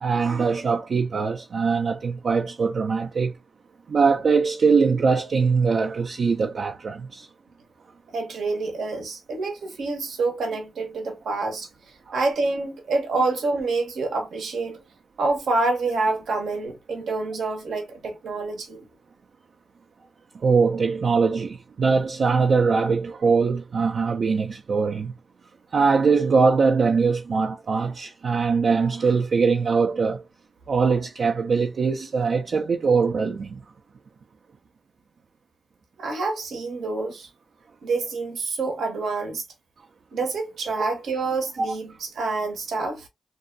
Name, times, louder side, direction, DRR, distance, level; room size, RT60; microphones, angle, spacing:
voice 1, 0.0-3.4 3.9-7.3 12.1-12.2 20.3-25.1 25.7-30.2 30.7-33.6, right 5 dB, 70° right, 0.4 m, -22 dB
voice 2, 8.1-11.7 12.1-14.8 15.2-18.9 36.0-37.3 37.8-39.4 40.1-43.1, right 3 dB, 85° right, 0.8 m, -27 dB
2.6 x 2.2 x 2.5 m
cardioid pair, 45°, 0 cm